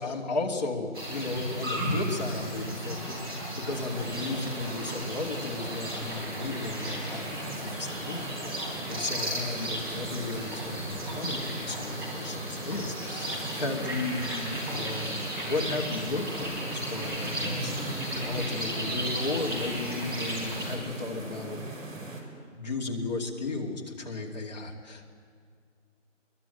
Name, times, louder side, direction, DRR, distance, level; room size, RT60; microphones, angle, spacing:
voice 1, 0.0-8.2 8.5-17.7 18.1-21.6 22.5-25.0, left 3 dB, 35° left, -1 dB, 2.6 m, -34 dB
sound 1, 0.9-20.8, equal, 20° right, 3.5 m, -35 dB
sound 2, 3.7-22.2, right 2 dB, 80° right, 5.3 m, -39 dB
22.5 x 22.0 x 9.2 m, 2.1 s
figure-of-eight pair, 175°, 39 cm